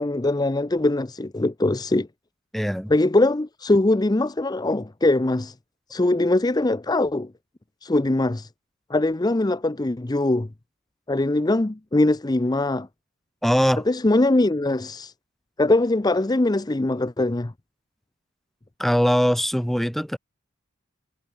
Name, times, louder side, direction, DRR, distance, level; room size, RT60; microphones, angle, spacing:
voice 1, 0.0-2.1 2.9-5.5 5.9-7.3 7.8-8.5 8.9-10.5 11.1-12.9 13.9-15.1 15.6-17.5, left 2 dB, 20° left, 0.6 m, -22 dB
voice 2, 2.5-2.9 13.4-13.8 18.8-20.2, equal, ahead, 1.5 m, -21 dB
head